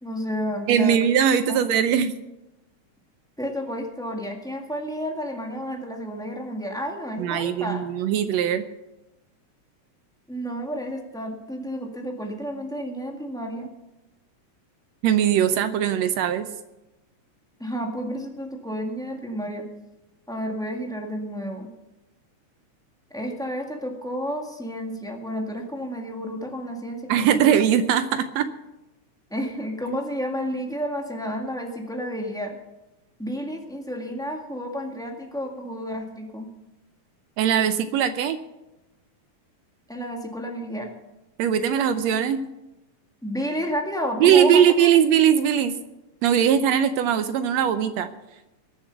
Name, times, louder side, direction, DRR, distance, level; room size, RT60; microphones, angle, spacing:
voice 1, 0.0-1.0 1.5-1.6 3.4-7.8 10.3-13.7 17.6-19.7 20.3-21.7 23.1-27.4 29.3-32.6 33.2-36.5 39.9-40.9 43.2-44.9, equal, ahead, 1 dB, 1.0 m, -31 dB
voice 2, 0.7-2.1 7.2-8.6 15.0-16.5 27.1-28.5 37.4-38.4 41.4-42.5 44.2-45.8 46.2-48.1, right 9 dB, 75° right, 11 dB, 1.7 m, -20 dB
20.5 x 7.3 x 6.9 m, 0.99 s
omnidirectional pair, 3.4 m